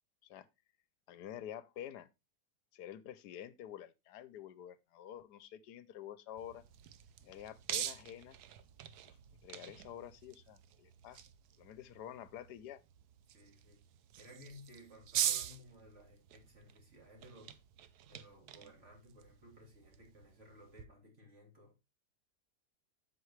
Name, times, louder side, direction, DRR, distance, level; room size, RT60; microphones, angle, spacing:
voice 1, 1.1-2.1 2.7-6.6 7.2-8.4 9.4-11.2 11.6-12.8, left 10 dB, 80° left, 1.2 m, -49 dB
sound 1, 6.4-20.8, right 11 dB, 75° right, 1.2 m, -44 dB
voice 2, 13.3-13.8 14.2-17.6 18.0-21.8, equal, 45° right, 2.9 m, -57 dB
7.9 x 6.9 x 3.2 m
omnidirectional pair, 1.8 m